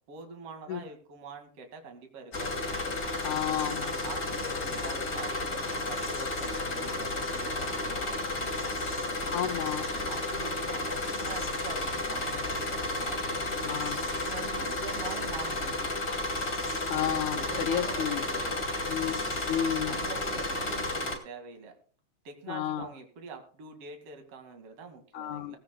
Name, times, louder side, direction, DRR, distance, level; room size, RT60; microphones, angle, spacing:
voice 1, 0.1-2.7 3.2-8.9 10.1-16.1 17.3-18.8 19.8-21.7 22.2-25.6, right 4 dB, 50° right, 4 dB, 3.1 m, -45 dB
sound 1, 2.3-21.2, left 2 dB, 30° left, 3.0 m, -32 dB
voice 2, 3.2-3.9 9.3-9.8 13.6-14.1 16.9-18.3 18.9-19.1 19.5-20.0 22.5-22.9 25.1-25.6, left 10 dB, 75° left, 4 dB, 2.7 m, -31 dB
18.5 x 15.5 x 2.3 m, 0.43 s
omnidirectional pair, 3.5 m